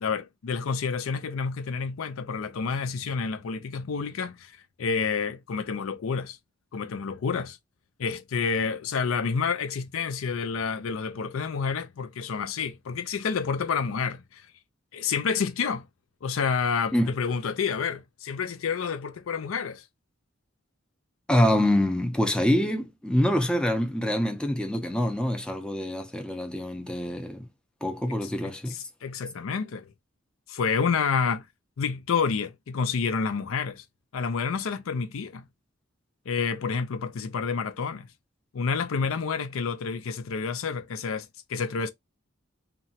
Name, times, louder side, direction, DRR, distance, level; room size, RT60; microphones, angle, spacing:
voice 1, 0.0-4.5 4.8-6.4 6.7-7.6 8.0-14.5 14.9-15.9 16.2-19.8 28.4-29.9 30.5-31.4 31.8-33.8 34.1-35.5 36.3-38.1 38.5-41.9, left 5 dB, 75° left, 0.4 m, -29 dB
voice 2, 21.3-27.5 27.8-28.8, left 1 dB, 5° left, 0.5 m, -25 dB
2.9 x 2.2 x 2.7 m
head